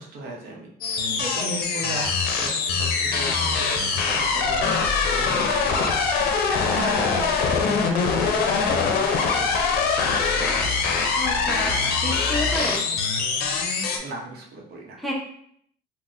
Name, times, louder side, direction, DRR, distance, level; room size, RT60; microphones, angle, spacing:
voice 1, 0.0-9.5 9.9-10.9 11.5-11.8 13.9-15.0, right 2 dB, 70° right, 0 dB, 0.8 m, -38 dB
sound 1, 0.8-14.0, left 5 dB, 70° left, 0.5 m, -23 dB
voice 2, 1.1-1.5 11.1-12.9 15.0-15.1, left 1 dB, ahead, -2 dB, 0.6 m, -30 dB
3.9 x 2.1 x 2.5 m, 0.66 s
cardioid pair, 110°, 17 cm